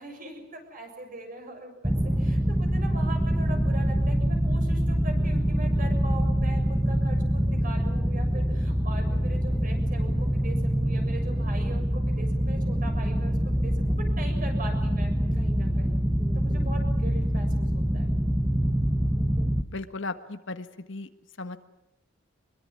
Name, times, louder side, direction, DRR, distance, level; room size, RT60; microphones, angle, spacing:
voice 1, 0.0-16.0 16.3-18.1, right 1 dB, 40° right, 5 dB, 7.1 m, -41 dB
sound 1, 1.8-19.6, equal, 10° right, 1.1 m, -25 dB
voice 2, 19.6-21.1 21.4-21.6, left 3 dB, 60° left, 9 dB, 1.5 m, -36 dB
25.0 x 22.5 x 9.6 m, 0.84 s
head